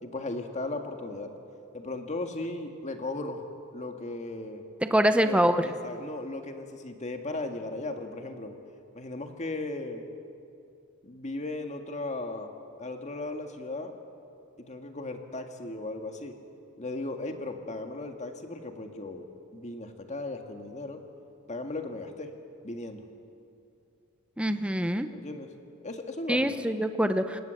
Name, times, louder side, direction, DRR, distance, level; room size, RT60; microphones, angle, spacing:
voice 1, 0.0-1.3 1.7-3.5 3.7-4.6 5.2-8.5 8.9-10.0 11.0-12.5 12.8-13.9 14.6-16.3 16.8-21.0 21.5-22.3 22.6-23.0 25.1-25.5 25.8-26.6, left 2 dB, 35° left, 5 dB, 1.9 m, -36 dB
voice 2, 4.9-5.7 24.4-25.1 26.3-27.4, equal, 5° right, 9 dB, 0.8 m, -24 dB
28.0 x 18.5 x 7.8 m, 2.6 s
head